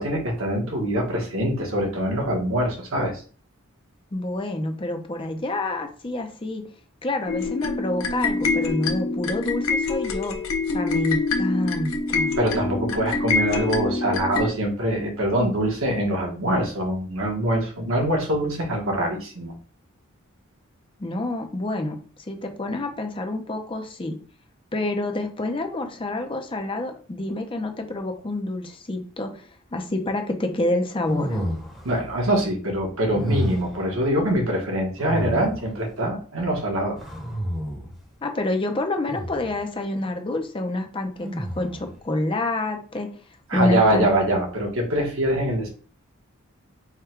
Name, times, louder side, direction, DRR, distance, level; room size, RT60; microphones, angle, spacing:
voice 1, 0.0-3.1 12.4-19.5 31.8-37.0 43.5-45.7, right 1 dB, 70° right, 1 dB, 1.2 m, -24 dB
voice 2, 4.1-6.6 7.0-10.4 10.7-12.4 21.0-22.0 22.3-24.2 24.7-31.4 38.2-43.1 43.5-44.1, left 2 dB, 25° left, 4 dB, 0.5 m, -28 dB
sound 1, 7.3-14.5, left 3 dB, 75° left, 0.8 m, -25 dB
sound 2, 31.1-32.0 33.1-33.8 35.0-35.8 37.0-38.0 39.1-39.6 41.2-41.9, equal, ahead, 1.2 m, -30 dB
3.5 x 2.3 x 4.4 m, 0.40 s
head